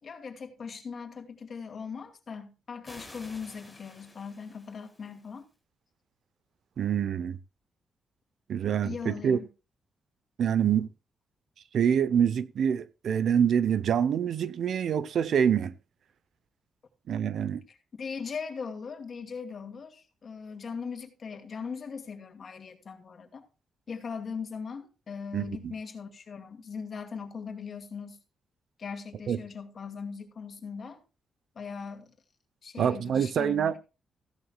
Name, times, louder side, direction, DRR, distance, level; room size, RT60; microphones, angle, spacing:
voice 1, 0.0-5.5 8.8-9.5 17.7-23.5 23.9-28.2 28.8-31.0 31.5-32.2 32.6-33.8, left 5 dB, 50° left, 2.4 m, -39 dB
sound 1, 2.8-5.4, left 1 dB, 5° left, 5.0 m, -51 dB
voice 2, 6.8-7.4 8.5-9.4 10.4-10.9 11.7-15.7 17.1-17.6 25.3-25.7 29.3-29.4 32.8-33.7, right 8 dB, 70° right, 0.8 m, -26 dB
16.0 x 11.5 x 2.4 m
cardioid pair, 110°, 0 cm